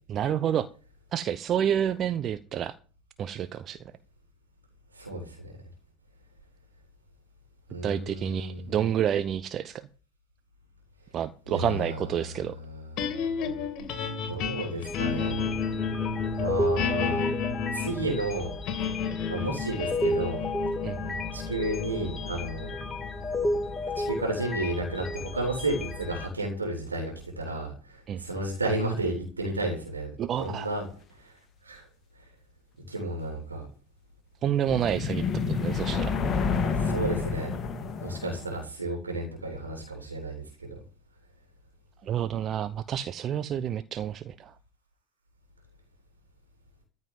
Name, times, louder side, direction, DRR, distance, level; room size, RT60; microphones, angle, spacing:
voice 1, 0.1-0.7 1.1-2.7 3.2-3.8 7.8-9.9 11.1-12.6 20.8-21.2 28.1-28.2 30.2-30.7 34.4-36.2 42.0-44.5, right 9 dB, 40° right, 14 dB, 0.7 m, -29 dB
voice 2, 4.9-5.5 7.7-8.8 11.5-13.9 14.3-15.5 16.4-18.5 19.3-20.4 21.3-22.7 23.9-30.1 30.4-30.8 31.2-31.3 31.6-31.8 32.9-33.7 36.6-37.5 38.0-40.7, right 2 dB, 90° right, 0 dB, 3.4 m, -32 dB
sound 1, 13.0-25.3, left 6 dB, 50° left, 2.8 m, -33 dB
sound 2, 14.8-26.3, left 2 dB, 15° left, 2.4 m, -32 dB
sound 3, 34.7-38.6, left 5 dB, 30° left, 2.1 m, -29 dB
14.0 x 5.4 x 9.3 m, 0.40 s
figure-of-eight pair, 75°, 0 cm